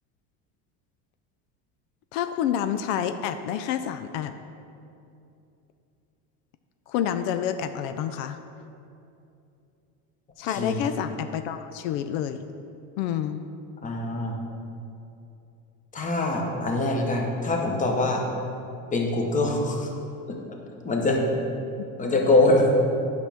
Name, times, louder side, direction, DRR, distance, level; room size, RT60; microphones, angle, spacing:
voice 1, 2.1-4.3 6.9-8.4 10.4-12.4 13.0-13.4, left 9 dB, 80° left, 9 dB, 0.5 m, -28 dB
voice 2, 10.5-10.8 13.8-14.4 15.9-18.2 18.9-19.9 20.3-20.4 20.8-21.2 22.0-22.7, left 2 dB, 20° left, 1 dB, 1.0 m, -23 dB
9.7 x 6.1 x 3.5 m, 2.7 s
supercardioid pair, 130°, 39 cm